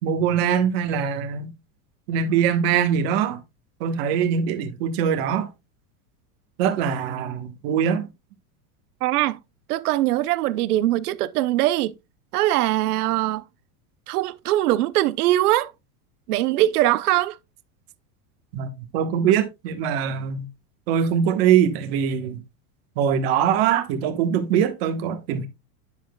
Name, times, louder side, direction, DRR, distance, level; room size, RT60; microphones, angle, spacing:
voice 1, 0.0-1.5 2.1-3.4 3.8-5.5 6.6-8.1 18.5-20.5 20.9-22.4 23.0-25.5, right 8 dB, 40° right, 1.3 m, -22 dB
voice 2, 9.0-9.4 9.7-11.9 12.3-13.4 14.1-15.7 16.3-17.4, right 15 dB, 85° right, 0.8 m, -21 dB
10.0 x 6.7 x 2.3 m
supercardioid pair, 180°, 44 cm